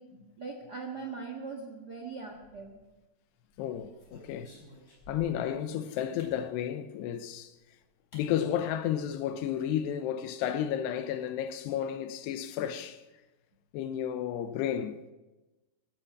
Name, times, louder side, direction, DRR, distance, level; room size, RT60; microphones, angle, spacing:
voice 1, 0.0-2.8, right 4 dB, 60° right, 1.0 m, -41 dB
sound 1, 2.3-3.0 3.5-5.5 6.2-6.4 7.5-7.6 8.1-8.3 8.6-8.7 9.0-9.4, left 2 dB, 20° left, 5.5 m, -53 dB
voice 2, 3.6-4.5 5.1-7.5 8.1-13.0 13.7-15.0, left 10 dB, 85° left, 2.9 m, -32 dB
15.5 x 13.0 x 6.0 m
omnidirectional pair, 4.8 m